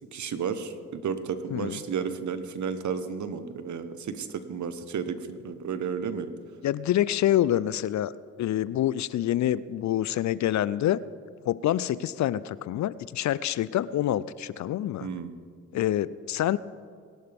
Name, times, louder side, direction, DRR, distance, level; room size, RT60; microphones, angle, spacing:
voice 1, 0.1-6.3 15.0-15.3, right 6 dB, 55° right, 11 dB, 1.2 m, -32 dB
voice 2, 6.6-8.1 8.4-11.0 11.4-15.1 15.7-16.6, left 12 dB, 55° left, 19 dB, 0.5 m, -26 dB
21.5 x 11.5 x 3.6 m, 2.2 s
hypercardioid pair, 55°, 35 cm